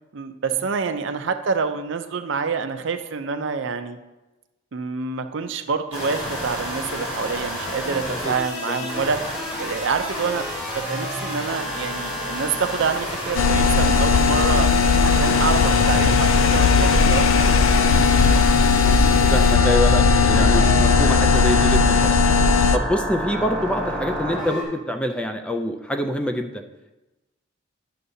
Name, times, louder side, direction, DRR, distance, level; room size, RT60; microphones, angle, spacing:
voice 1, 0.1-4.0 4.7-9.2 9.6-10.5 10.9-17.3, right 5 dB, 65° right, 8 dB, 0.5 m, -27 dB
sound 1, 5.9-24.6, left 1 dB, 30° left, 2.5 m, -29 dB
sound 2, 13.4-22.8, left 4 dB, 85° left, 0.4 m, -17 dB
voice 2, 19.3-22.2 22.7-26.6, equal, 5° left, 5 dB, 0.4 m, -26 dB
11.0 x 6.6 x 2.7 m, 1.1 s
head